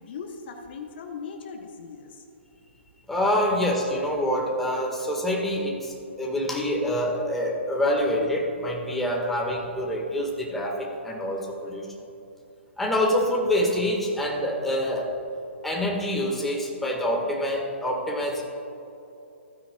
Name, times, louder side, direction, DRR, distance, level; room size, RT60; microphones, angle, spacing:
voice 1, 0.0-2.2 3.5-3.6, left 6 dB, 50° left, 3 dB, 1.1 m, -38 dB
voice 2, 3.1-11.9 12.8-15.1 15.6-18.4, equal, 5° left, -2 dB, 1.6 m, -26 dB
15.5 x 9.4 x 2.3 m, 2.9 s
hypercardioid pair, 130°, 7 cm